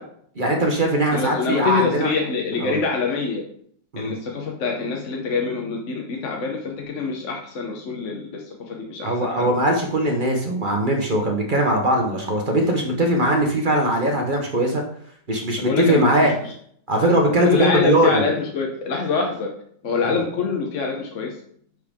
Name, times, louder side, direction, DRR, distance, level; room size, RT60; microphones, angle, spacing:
voice 1, 0.4-2.1 2.6-2.8 3.9-4.2 9.0-14.8 15.3-16.3 16.9-18.3, right 1 dB, 40° right, 1 dB, 0.8 m, -20 dB
voice 2, 1.1-3.4 4.0-9.5 15.6-16.1 16.4-16.5 17.4-19.5 19.8-21.3, left 4 dB, 50° left, 0 dB, 1.0 m, -25 dB
10.0 x 4.7 x 3.6 m, 0.64 s
omnidirectional pair, 2.1 m